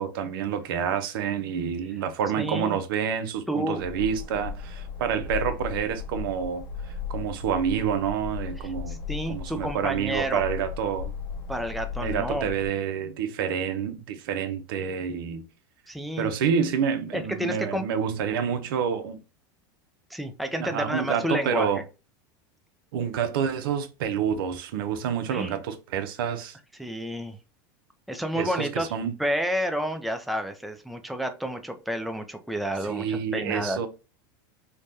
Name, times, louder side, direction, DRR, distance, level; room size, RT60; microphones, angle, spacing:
voice 1, 0.0-9.0 9.3-11.1 12.0-15.5 16.2-19.2 20.6-21.8 22.9-26.6 28.3-29.1 32.9-33.9, right 7 dB, 80° right, 0.5 m, -28 dB
voice 2, 2.4-2.8 3.5-3.8 8.6-10.4 11.5-12.5 15.9-16.3 17.1-17.8 20.1-21.8 25.3-25.6 26.7-27.4 28.1-28.9 29.2-33.8, equal, ahead, 0.4 m, -30 dB
sound 1, 3.8-12.7, left 5 dB, 75° left, 0.8 m, -36 dB
3.2 x 2.1 x 2.6 m
supercardioid pair, 110°, 12 cm